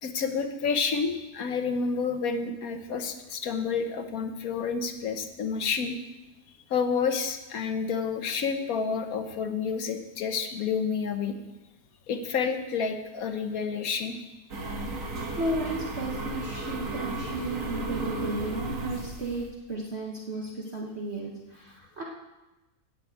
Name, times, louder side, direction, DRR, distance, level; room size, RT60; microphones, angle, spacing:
voice 1, 0.0-6.0 6.7-11.4 12.1-14.2, left 5 dB, 75° left, 7 dB, 1.4 m, -29 dB
sound 1, 14.5-19.5, right 2 dB, 65° right, 1.8 m, -34 dB
voice 2, 15.4-22.0, right 2 dB, 50° right, -1 dB, 1.4 m, -34 dB
11.5 x 5.9 x 8.5 m, 1.1 s
omnidirectional pair, 1.5 m